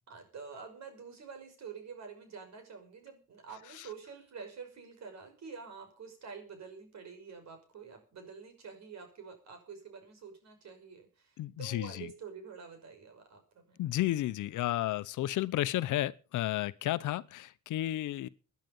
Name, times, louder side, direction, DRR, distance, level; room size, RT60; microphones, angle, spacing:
voice 1, 0.1-13.8, right 5 dB, 60° right, 6.0 m, -48 dB
voice 2, 11.4-12.1 13.8-18.3, left 14 dB, 80° left, 0.9 m, -32 dB
17.0 x 10.5 x 5.5 m
cardioid pair, 90°, 30 cm